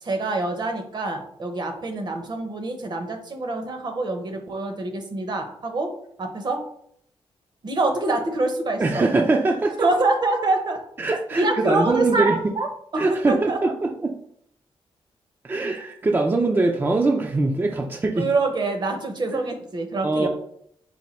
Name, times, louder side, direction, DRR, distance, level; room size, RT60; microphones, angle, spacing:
voice 1, 0.0-6.6 7.6-9.1 9.8-10.8 11.3-12.7 12.9-13.6 18.1-20.3, right 2 dB, 45° right, 5 dB, 0.7 m, -25 dB
voice 2, 8.8-9.9 11.0-12.4 13.0-14.1 15.4-18.3 20.0-20.3, right 3 dB, 20° right, 1 dB, 0.4 m, -22 dB
4.2 x 2.2 x 4.2 m, 0.68 s
cardioid pair, 100°, 10 cm